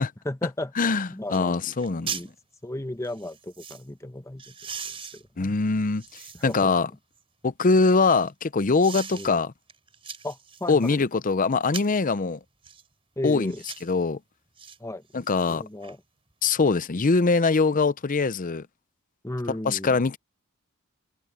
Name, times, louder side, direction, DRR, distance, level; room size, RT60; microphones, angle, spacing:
voice 1, 0.2-0.7 1.1-1.6 2.1-2.3 2.6-4.5 5.1-5.6 6.3-6.7 9.1-9.4 10.2-11.0 13.2-13.6 14.8-15.0 15.5-16.0 19.2-20.0, left 1 dB, 15° left, 1.1 m, -34 dB
voice 2, 0.8-2.1 5.4-6.9 7.4-9.5 10.7-12.4 13.2-13.5 13.8-14.2 15.1-15.6 16.4-18.7 19.5-20.2, left 4 dB, 40° left, 0.6 m, -23 dB
sound 1, 0.8-0.9 1.3-1.4 1.7-2.3 3.0-3.8 4.4-6.7 7.2-8.3 8.8-9.3 9.7-11.0 11.6-12.0 12.6-12.9 13.5-13.9 14.6-14.8 15.1-15.9 16.3-16.4, right 6 dB, 25° right, 3.9 m, -40 dB
head